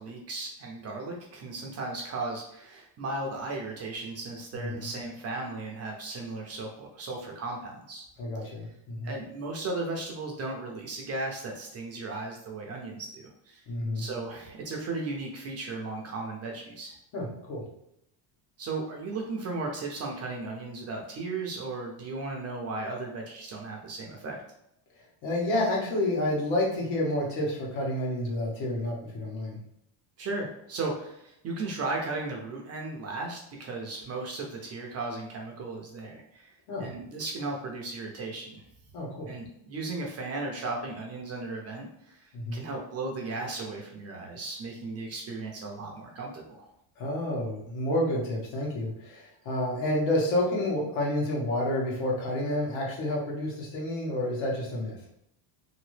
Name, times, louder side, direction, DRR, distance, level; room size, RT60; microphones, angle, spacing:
voice 1, 0.0-8.1 8.4-8.5 9.0-13.6 13.9-17.0 18.6-24.4 30.2-36.5 36.8-38.6 39.3-46.7, right 3 dB, 35° right, 0 dB, 0.4 m, -36 dB
voice 2, 8.2-9.1 13.7-14.0 17.1-17.6 25.2-29.6 36.7-36.9 38.9-39.3 42.3-42.7 47.0-55.0, left 1 dB, 75° left, -3 dB, 1.3 m, -29 dB
2.9 x 2.6 x 3.1 m, 0.77 s
cardioid pair, 170°, 48 cm